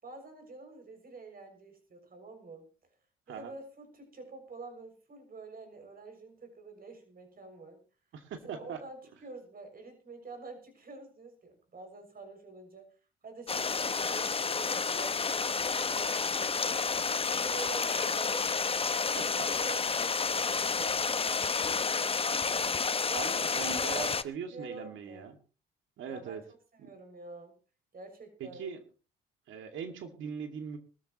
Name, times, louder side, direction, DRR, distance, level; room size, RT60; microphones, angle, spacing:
voice 1, 0.0-2.7 3.3-7.8 8.4-12.9 13.2-18.5 18.9-22.1 22.5-25.3 26.1-26.4 26.8-27.5 27.9-28.7, right 3 dB, 45° right, 6 dB, 6.6 m, -48 dB
voice 2, 8.1-8.8 19.4-19.5 23.1-25.4 26.0-26.4 26.8-26.9 28.4-28.8 29.5-30.8, right 7 dB, 70° right, 6 dB, 2.4 m, -40 dB
Stream, 13.5-24.2, left 5 dB, 25° left, 0.9 m, -30 dB
22.0 x 13.5 x 3.1 m, 0.35 s
supercardioid pair, 60°, 21 cm